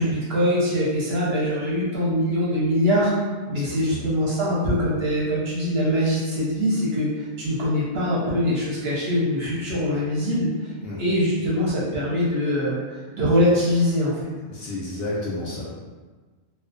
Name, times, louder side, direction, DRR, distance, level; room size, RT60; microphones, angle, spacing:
voice 1, 0.0-3.1 3.5-7.1 7.4-10.5 11.0-12.8 13.1-14.1, equal, 60° right, -6 dB, 0.7 m, -23 dB
voice 2, 3.5-4.1 10.8-11.0 14.5-15.8, left 2 dB, 65° left, -6 dB, 0.7 m, -32 dB
2.3 x 2.1 x 2.5 m, 1.3 s
omnidirectional pair, 1.3 m